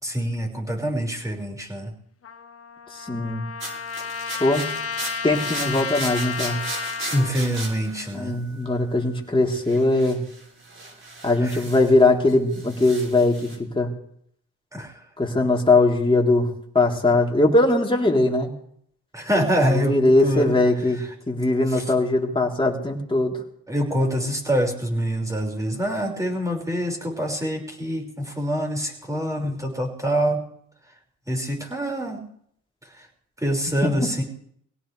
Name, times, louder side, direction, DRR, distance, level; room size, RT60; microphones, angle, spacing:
voice 1, 0.0-1.9 7.1-8.4 11.4-11.6 14.7-14.9 19.1-20.0 20.2-20.6 21.7-21.8 23.7-30.4 31.3-32.2 33.4-34.2, equal, 10° right, 1 dB, 5.7 m, -25 dB
Trumpet, 2.2-7.4, left 6 dB, 45° left, 1.5 m, -32 dB
voice 2, 3.0-3.4 4.4-4.7 5.2-6.6 8.1-10.2 11.2-13.9 15.2-16.5 16.7-18.5 19.7-21.0 21.3-23.3 33.8-34.1, left 2 dB, 15° left, -1 dB, 3.8 m, -20 dB
sound 1, 3.6-8.8 9.5-12.0 12.3-13.6, right 2 dB, 40° right, 5.7 m, -36 dB
23.0 x 17.5 x 3.4 m, 0.66 s
supercardioid pair, 70°, 32 cm